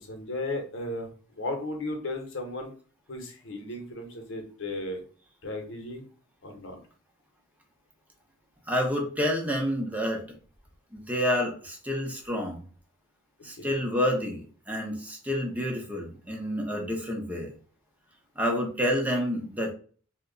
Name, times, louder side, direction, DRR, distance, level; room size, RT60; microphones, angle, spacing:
voice 1, 0.0-2.7 3.1-5.0 5.4-6.0 6.4-6.8 13.5-13.8, left 2 dB, 65° left, 3 dB, 0.8 m, -35 dB
voice 2, 8.7-10.2 10.9-12.6 13.4-17.5 18.4-19.7, equal, 10° right, 1 dB, 0.7 m, -29 dB
2.8 x 2.1 x 3.7 m, 0.42 s
head